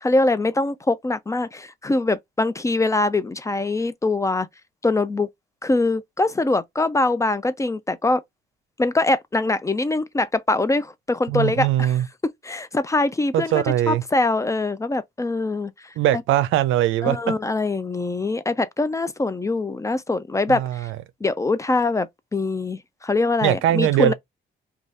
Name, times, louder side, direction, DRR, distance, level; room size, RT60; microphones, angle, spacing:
voice 1, 0.0-4.5 4.8-5.3 5.6-8.2 8.8-11.9 12.4-16.2 17.0-20.9 21.2-24.1, left 2 dB, 15° left, 0.3 m, -23 dB
voice 2, 11.3-12.1 13.3-14.0 16.0-17.4 20.5-21.0 23.4-24.1, right 13 dB, 85° right, 0.4 m, -21 dB
2.6 x 2.3 x 3.1 m
cardioid pair, 90°, 20 cm